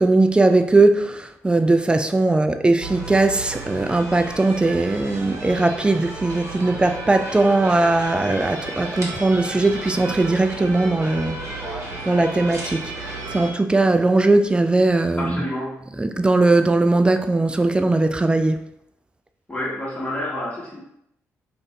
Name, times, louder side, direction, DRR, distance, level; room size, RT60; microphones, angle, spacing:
voice 1, 0.0-11.4 12.1-15.4 16.0-18.7, right 2 dB, 15° right, 0.3 m, -19 dB
sound 1, 2.8-13.5, right 2 dB, 45° right, 1.0 m, -33 dB
voice 2, 15.2-15.8 19.5-20.8, left 1 dB, 15° left, 1.3 m, -29 dB
2.5 x 2.5 x 3.3 m
hypercardioid pair, 45°, 7 cm